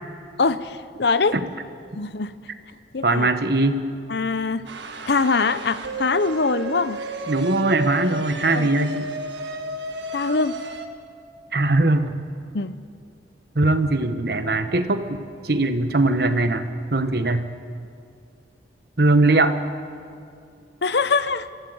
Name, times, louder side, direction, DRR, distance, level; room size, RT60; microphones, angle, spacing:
voice 1, 0.4-1.4 1.9-2.3 2.9-3.3 4.1-4.6 5.1-7.0 8.5-8.7 10.1-10.6 12.5-12.7 20.8-21.5, left 4 dB, 65° left, 14 dB, 0.7 m, -23 dB
voice 2, 3.0-3.9 7.3-9.1 11.5-12.1 13.5-15.2 15.4-16.6 16.9-17.5 19.0-19.6, right 2 dB, 55° right, 9 dB, 1.2 m, -20 dB
sound 1, 4.7-10.9, right 2 dB, 75° right, 1.6 m, -32 dB
24.0 x 15.5 x 7.9 m, 2.4 s
head